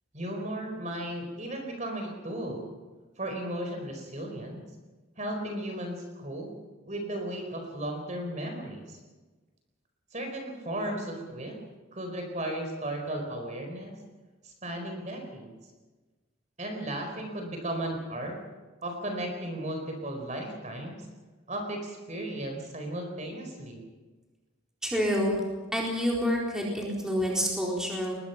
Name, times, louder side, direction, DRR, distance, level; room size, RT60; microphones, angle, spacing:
voice 1, 0.1-2.7 3.2-4.6 5.2-6.5 6.9-9.0 10.1-11.6 11.9-14.0 14.4-15.5 16.6-18.4 18.8-21.1 21.5-23.8, right 1 dB, 35° right, 3 dB, 4.6 m, -35 dB
voice 2, 24.8-25.4 25.7-28.1, equal, 5° right, -3 dB, 4.1 m, -28 dB
23.5 x 21.0 x 5.9 m, 1.3 s
head